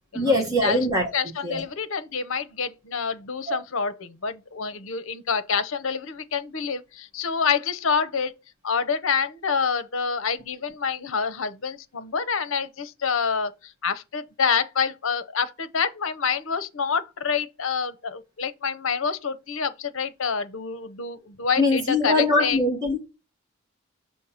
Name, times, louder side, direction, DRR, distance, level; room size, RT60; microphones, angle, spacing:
voice 1, 0.1-1.1 1.4-1.6 3.5-3.6 21.6-23.0, left 2 dB, 15° right, 1.3 m, -22 dB
voice 2, 1.1-8.3 8.6-22.6, left 6 dB, 70° left, 0.7 m, -27 dB
6.4 x 3.1 x 5.6 m
head